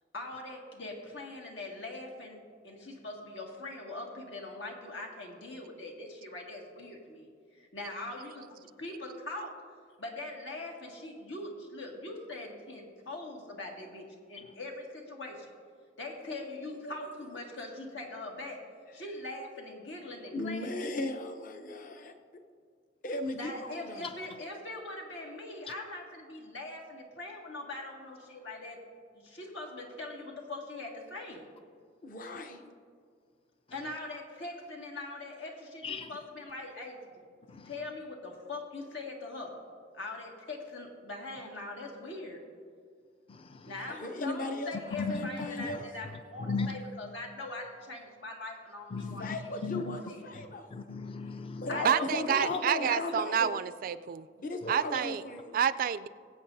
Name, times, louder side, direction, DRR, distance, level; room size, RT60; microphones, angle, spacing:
voice 1, 0.1-9.6 10.0-15.5 16.0-18.6 18.9-20.7 23.3-28.8 29.1-31.4 33.7-37.0 37.6-39.6 39.9-42.4 43.6-49.5 50.1-50.3 51.7-53.2, left 2 dB, 85° left, 0 dB, 1.9 m, -42 dB
voice 2, 20.3-22.1 23.0-24.1 32.0-32.7 43.9-45.9 49.2-50.7 51.6-53.5 54.4-55.5, left 2 dB, 45° left, 6 dB, 0.8 m, -36 dB
voice 3, 43.3-43.6 45.0-45.2 46.4-46.7 48.9-49.4 49.6-50.0 50.7-51.7, left 4 dB, 30° left, 8 dB, 0.4 m, -36 dB
voice 4, 51.8-54.3 54.7-55.2 55.5-56.1, right 8 dB, 50° right, 15 dB, 0.3 m, -28 dB
22.0 x 8.1 x 2.7 m, 2.1 s
head